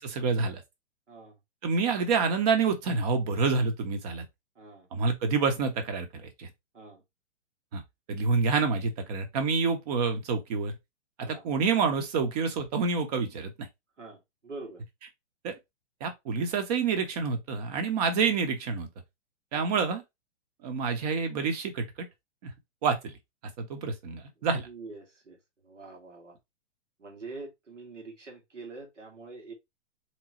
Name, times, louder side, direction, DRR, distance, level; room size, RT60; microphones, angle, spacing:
voice 1, 0.0-0.6 1.6-4.2 4.9-6.5 7.7-7.8 8.1-10.7 11.3-13.7 15.4-15.5 16.0-18.9 19.5-20.0 20.6-21.8 22.4-22.5 22.8-23.1 23.6-24.7, right 5 dB, 35° right, 0.9 m, -28 dB
voice 2, 4.6-4.9 6.7-7.0 11.2-11.4 14.0-14.8 16.3-16.4 19.5-19.7 24.5-25.4 25.6-26.4 27.0-29.5, right 3 dB, 75° right, 1.6 m, -45 dB
3.8 x 3.0 x 2.8 m
figure-of-eight pair, 115°, 37 cm